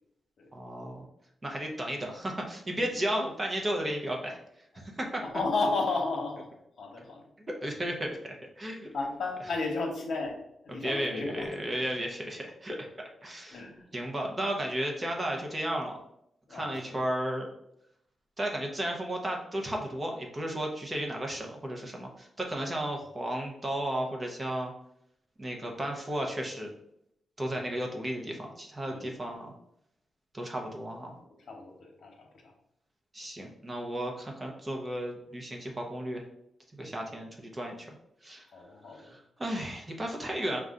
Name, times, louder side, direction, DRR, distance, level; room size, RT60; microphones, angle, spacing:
voice 1, 0.5-1.1 1.4-4.4 4.8-5.2 7.5-8.9 10.8-12.9 13.2-13.6 13.9-16.0 16.5-17.5 18.4-24.7 25.4-26.7 27.4-29.5 30.3-31.2 33.1-36.2 36.8-37.9 38.2-38.4 38.9-40.6, right 1 dB, 20° right, 1 dB, 0.7 m, -34 dB
voice 2, 5.2-6.5 6.8-7.3 8.9-10.4 10.6-11.5 13.5-13.8 16.5-17.0 27.5-27.7 28.9-29.1 31.4-32.5 36.8-37.0 38.5-39.1, left 3 dB, 60° left, 1 dB, 1.0 m, -33 dB
5.2 x 2.3 x 3.7 m, 0.76 s
wide cardioid pair, 150°, 0 cm